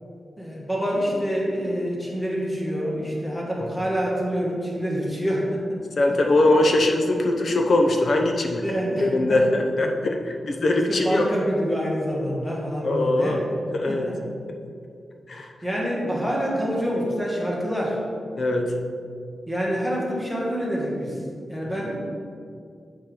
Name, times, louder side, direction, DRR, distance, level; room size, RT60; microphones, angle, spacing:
voice 1, 0.4-5.6 8.6-9.4 10.9-13.4 13.9-14.2 15.6-18.0 19.5-21.1 21.5-21.9, equal, 5° left, -4 dB, 1.5 m, -26 dB
voice 2, 6.0-8.6 9.0-11.2 12.8-13.4 13.7-14.1 15.3-15.5 18.4-18.7 21.6-21.8, left 2 dB, 50° left, 3 dB, 0.7 m, -21 dB
7.5 x 4.5 x 5.0 m, 2.3 s
wide cardioid pair, 155°, 0 cm